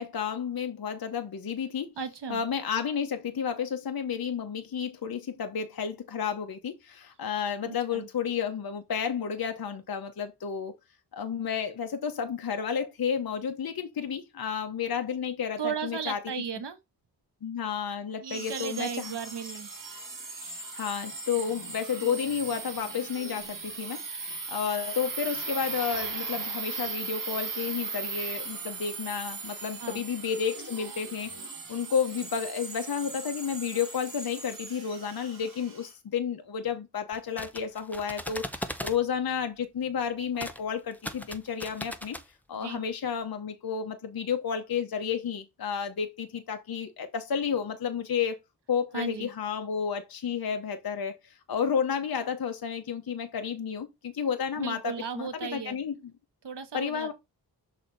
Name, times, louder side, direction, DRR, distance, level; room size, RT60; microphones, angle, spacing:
voice 1, 0.0-2.0 2.3-10.7 11.1-16.2 17.4-19.1 20.7-31.3 31.7-42.2 42.5-48.4 48.7-56.0 56.7-57.1, left 7 dB, 60° left, 0.9 m, -31 dB
voice 2, 2.0-2.4 7.6-8.1 15.6-16.8 18.2-19.7 21.3-21.5 29.8-30.0 42.6-42.8 48.9-49.3 54.6-55.8 56.4-57.1, right 6 dB, 80° right, 1.3 m, -35 dB
sound 1, 18.2-35.9, right 4 dB, 50° right, 1.5 m, -38 dB
sound 2, 37.1-39.0 40.4-40.6 40.9-42.3, equal, 5° left, 0.7 m, -38 dB
6.2 x 4.2 x 3.9 m
wide cardioid pair, 85°, 41 cm